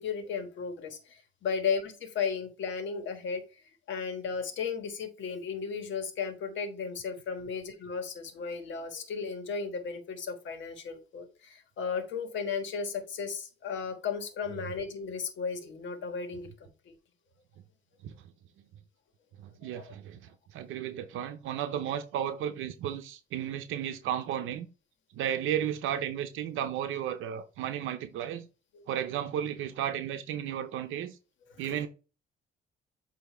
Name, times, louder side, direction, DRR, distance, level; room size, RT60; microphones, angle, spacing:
voice 1, 0.0-3.4 3.9-16.5 16.8-16.9 19.7-19.9 28.7-28.9 31.6-31.8, left 5 dB, 70° left, 1.4 m, -35 dB
voice 2, 19.4-24.7 25.1-28.5 28.9-31.2 31.6-31.9, right 10 dB, 85° right, 0.6 m, -34 dB
8.2 x 2.8 x 4.2 m
cardioid pair, 90°, 20 cm